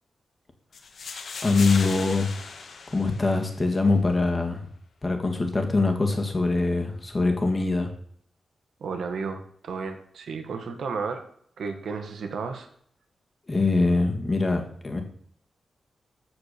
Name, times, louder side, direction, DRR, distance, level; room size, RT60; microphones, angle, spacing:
sound 1, 0.7-3.8, left 4 dB, 60° left, 1.5 m, -37 dB
voice 1, 1.4-2.3 2.9-4.7 5.0-7.9 13.5-15.0, left 3 dB, 25° left, 3 dB, 1.9 m, -23 dB
voice 2, 8.8-11.2 11.6-12.7, right 5 dB, 80° right, 6 dB, 1.6 m, -33 dB
14.0 x 4.8 x 6.8 m, 0.63 s
wide cardioid pair, 145°, 0 cm